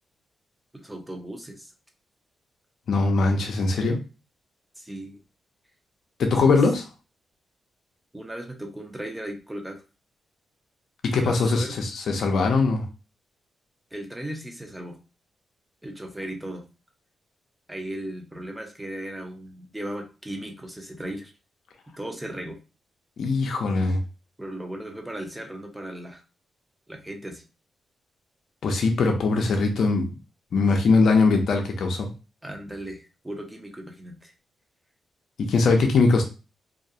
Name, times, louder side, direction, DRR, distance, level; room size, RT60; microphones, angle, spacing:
voice 1, 0.7-1.7 4.8-5.2 6.4-6.5 8.1-9.8 11.2-11.7 13.9-15.0 15.8-16.6 17.7-21.3 22.0-22.6 24.4-26.2 26.9-27.4 32.4-34.3, right 1 dB, 10° right, 3 dB, 0.6 m, -36 dB
voice 2, 2.9-4.0 6.2-6.9 11.0-12.9 23.2-24.0 28.6-30.1 30.5-32.1 35.4-36.2, left 3 dB, 70° left, 3 dB, 0.5 m, -21 dB
2.3 x 2.1 x 2.7 m, 0.32 s
cardioid pair, 75°, 0 cm